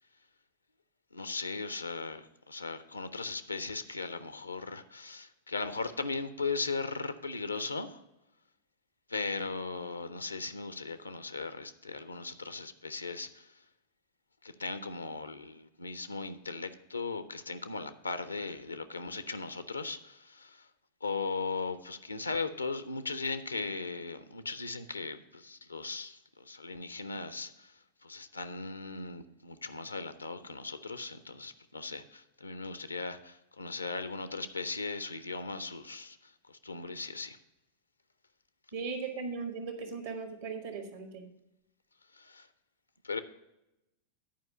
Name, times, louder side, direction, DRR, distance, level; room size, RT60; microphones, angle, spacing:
voice 1, 1.1-8.0 9.1-13.5 14.4-20.7 21.0-27.7 28.0-37.4 42.1-42.5 43.0-43.2, left 3 dB, 80° left, 12 dB, 0.5 m, -38 dB
voice 2, 38.7-41.3, right 5 dB, 60° right, 5 dB, 1.2 m, -38 dB
10.5 x 4.7 x 5.2 m, 0.90 s
figure-of-eight pair, 90°, 0 cm